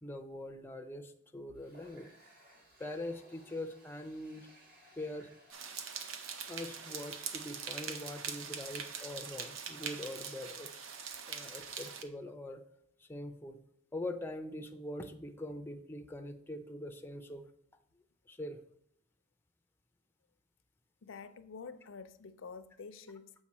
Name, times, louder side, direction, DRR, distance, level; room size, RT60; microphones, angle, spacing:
voice 1, 0.0-2.1 2.8-4.5 5.0-5.3 6.5-10.8 11.3-12.6 13.0-13.6 13.9-17.5 18.3-18.6, left 1 dB, 10° left, 6 dB, 0.4 m, -43 dB
Water tap faucet, 1.5-7.3, right 1 dB, 45° right, 1.8 m, -62 dB
sound 1, 5.5-12.0, right 6 dB, 80° right, 0.7 m, -42 dB
voice 2, 21.0-23.3, left 5 dB, 75° left, 12 dB, 0.5 m, -48 dB
7.2 x 5.0 x 4.1 m, 0.71 s
head